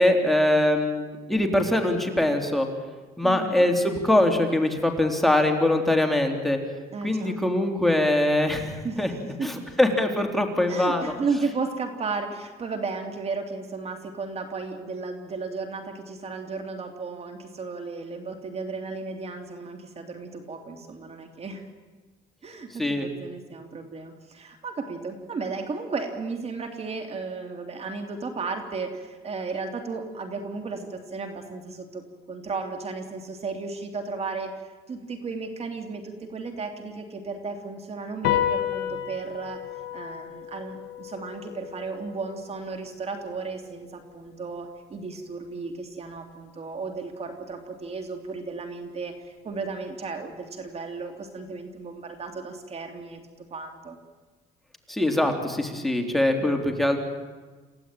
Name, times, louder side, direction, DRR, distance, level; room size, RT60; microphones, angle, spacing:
voice 1, 0.0-2.7 3.2-6.6 7.0-9.1 9.4-11.1 22.8-23.1 54.9-57.0, left 1 dB, ahead, 3 dB, 3.3 m, -23 dB
voice 2, 3.2-3.6 6.9-7.6 8.8-9.5 10.7-21.6 22.4-39.6 39.9-53.2 53.5-54.0 56.4-56.7, right 4 dB, 40° right, 5 dB, 2.9 m, -34 dB
sound 1, 38.2-45.0, left 10 dB, 75° left, 1.8 m, -33 dB
28.5 x 16.0 x 9.1 m, 1.4 s
cardioid pair, 110°, 17 cm